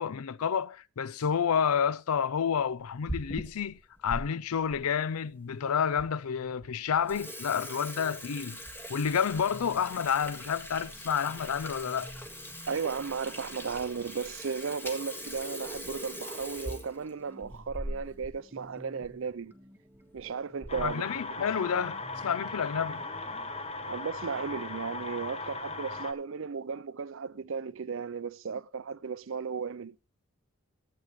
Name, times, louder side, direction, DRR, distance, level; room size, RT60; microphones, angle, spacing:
voice 1, 0.0-8.6 8.9-12.1 20.8-23.0, left 7 dB, 80° left, 0.5 m, -30 dB
Water tap faucet / Sink (filling or washing), 2.8-4.2 4.7-4.8 5.5-5.6 6.0-6.1 6.5-6.7 6.9-18.4 18.7-18.8 19.0-19.2 19.9-20.2 20.6-21.0, equal, 10° left, 1.6 m, -41 dB
sound 1, 4.0-23.8, equal, 10° right, 1.5 m, -55 dB
voice 2, 12.7-19.5 20.1-21.0 21.4-21.5 23.8-30.0, right 5 dB, 65° right, 0.5 m, -35 dB
sound 2, 20.7-26.1, left 3 dB, 30° left, 1.0 m, -38 dB
15.0 x 8.6 x 3.1 m
head